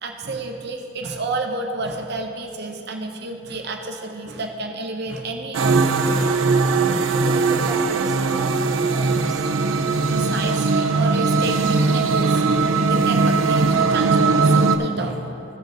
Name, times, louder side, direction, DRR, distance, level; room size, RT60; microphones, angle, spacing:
voice 1, 0.0-6.1 6.7-6.9 9.0-9.2 9.8-15.3, right 2 dB, 55° right, 3 dB, 0.8 m, -30 dB
sound 1, 5.5-14.8, right 3 dB, 80° right, 0.5 m, -19 dB
voice 2, 7.2-8.6 8.9-9.5, right 2 dB, 20° right, 4 dB, 0.5 m, -36 dB
15.5 x 5.2 x 3.9 m, 2.8 s
head